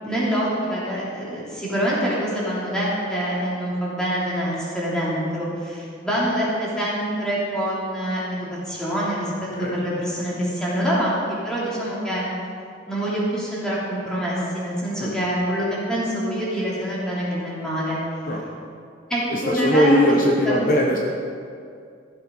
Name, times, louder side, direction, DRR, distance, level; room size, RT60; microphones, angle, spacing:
voice 1, 0.0-9.3 9.6-12.3 12.9-18.0 19.1-20.0 20.4-20.5, equal, 5° left, -8 dB, 3.1 m, -25 dB
voice 2, 19.3-21.0, equal, 45° left, -1 dB, 1.0 m, -19 dB
15.0 x 7.5 x 5.4 m, 2.4 s
head